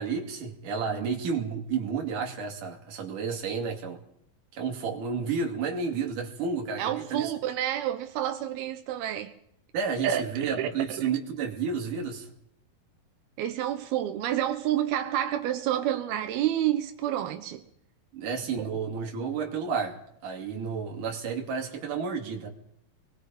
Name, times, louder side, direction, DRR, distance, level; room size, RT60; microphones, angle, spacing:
voice 1, 0.0-4.0 4.5-7.3 9.7-12.3 18.1-20.0 20.2-22.5, right 5 dB, 60° right, 4.0 m, -31 dB
voice 2, 6.8-9.3 10.0-10.2 10.5-11.1 13.4-17.6 20.5-20.7, right 11 dB, 90° right, 3.0 m, -29 dB
26.5 x 21.5 x 5.4 m
omnidirectional pair, 4.3 m